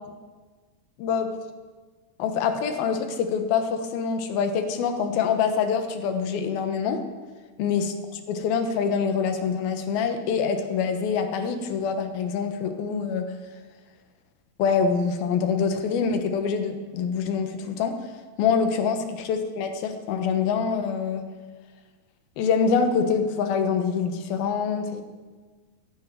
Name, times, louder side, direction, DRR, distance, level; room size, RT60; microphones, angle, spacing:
voice 1, 1.0-1.3 2.2-7.0 7.6-7.9 8.3-13.3 14.6-17.9 18.4-21.2 22.4-25.0, left 6 dB, 85° left, 8 dB, 3.0 m, -25 dB
11.0 x 10.5 x 9.1 m, 1.4 s
omnidirectional pair, 4.2 m